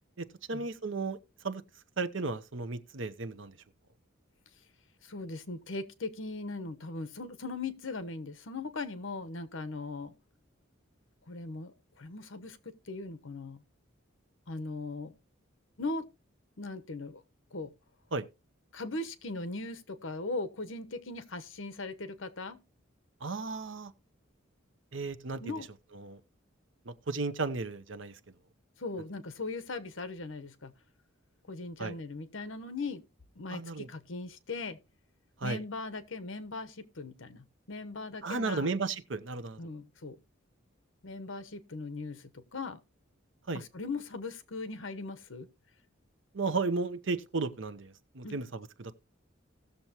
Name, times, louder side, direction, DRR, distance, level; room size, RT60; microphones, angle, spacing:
voice 1, 0.2-1.2 1.4-1.6 2.0-3.5 18.1-18.3 23.2-23.9 24.9-25.5 26.0-26.2 26.9-28.1 31.8-31.9 33.5-33.9 35.4-35.6 38.2-39.6 43.5-43.6 46.3-48.9, right 3 dB, 65° right, 0.8 m, -34 dB
voice 2, 5.0-10.1 11.3-13.6 14.5-15.1 15.8-16.1 16.6-17.2 17.5-17.7 18.7-22.6 25.4-25.7 28.8-30.7 31.5-33.0 33.4-34.8 35.4-38.7 39.6-40.2 41.0-42.8 43.5-45.5 48.2-48.4, left 3 dB, 70° left, 1.0 m, -39 dB
17.5 x 6.9 x 2.9 m
head